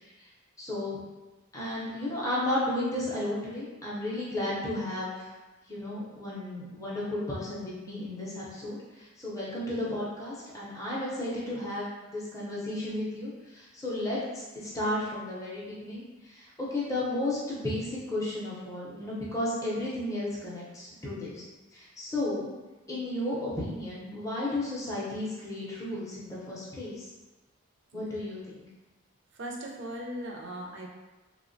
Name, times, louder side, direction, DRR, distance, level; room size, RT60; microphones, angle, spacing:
voice 1, 0.6-1.0 1.5-5.3 5.7-21.4 21.7-22.5 22.9-27.1 27.9-28.7, left 1 dB, 15° left, -7 dB, 0.5 m, -33 dB
voice 2, 29.3-30.9, right 1 dB, 55° right, 0 dB, 0.4 m, -38 dB
3.0 x 2.1 x 2.5 m, 1.1 s
head